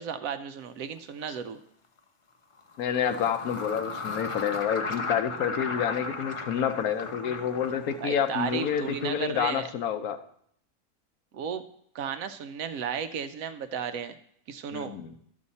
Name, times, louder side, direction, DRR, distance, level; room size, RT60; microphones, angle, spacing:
voice 1, 0.0-1.6 8.0-9.6 11.3-11.6 11.9-14.2 14.5-15.0, right 7 dB, 70° right, 10 dB, 1.0 m, -34 dB
sound 1, 1.0-1.1 2.6-9.3, left 4 dB, 45° left, 0.4 m, -36 dB
voice 2, 2.8-10.2 14.7-15.1, left 8 dB, 75° left, 9 dB, 1.2 m, -28 dB
12.0 x 6.8 x 4.1 m, 0.69 s
omnidirectional pair, 1.6 m